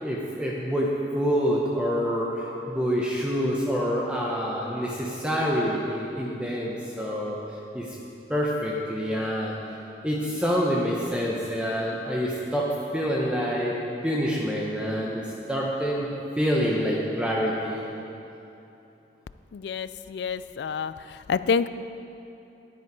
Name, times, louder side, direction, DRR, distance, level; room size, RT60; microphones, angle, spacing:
voice 1, 0.0-7.4 7.7-8.0 8.3-9.5 10.0-13.8 14.0-16.1 16.4-17.8, equal, 5° right, -4 dB, 0.8 m, -27 dB
voice 2, 19.5-20.9 21.3-21.7, left 6 dB, 75° left, 14 dB, 0.3 m, -27 dB
11.0 x 10.0 x 4.7 m, 2.9 s
head